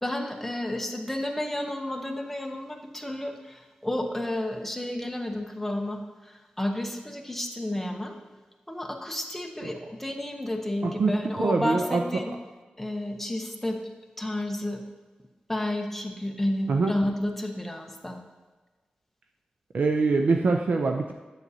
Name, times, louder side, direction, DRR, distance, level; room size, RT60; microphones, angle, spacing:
voice 1, 0.0-8.2 8.7-12.3 12.8-13.8 14.2-14.8 15.5-18.2, left 1 dB, 5° left, 3 dB, 0.8 m, -31 dB
voice 2, 11.4-12.0 16.7-16.9 19.7-21.1, right 4 dB, 65° right, 3 dB, 0.4 m, -24 dB
7.9 x 7.3 x 2.7 m, 1.3 s
wide cardioid pair, 110°, 3 cm